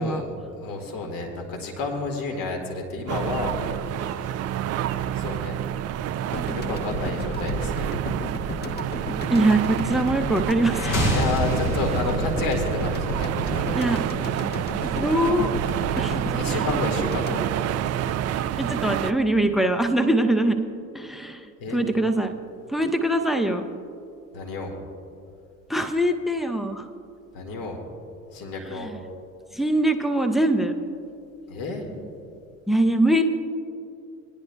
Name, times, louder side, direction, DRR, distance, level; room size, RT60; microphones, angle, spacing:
voice 1, 0.0-4.4 5.1-5.6 6.5-7.9 8.6-9.1 11.1-14.0 14.5-15.4 16.1-17.4 21.6-21.8 24.3-24.8 27.3-27.8 28.3-28.9 31.5-31.9, left 3 dB, 55° left, 2 dB, 2.0 m, -31 dB
sound 1, 3.1-19.1, right 11 dB, 40° right, 0.5 m, -28 dB
sound 2, 6.3-18.5, equal, 25° left, 0.9 m, -33 dB
voice 2, 9.3-11.0 13.7-14.3 15.0-15.5 16.0-16.6 18.6-20.6 20.9-22.4 22.7-23.7 25.7-26.9 28.6-29.0 29.5-30.8 32.7-33.2, right 1 dB, ahead, 7 dB, 0.7 m, -23 dB
sound 3, 10.7-14.6, right 1 dB, 75° left, 1.9 m, -28 dB
20.0 x 10.5 x 2.3 m, 2.5 s
hypercardioid pair, 60°, 42 cm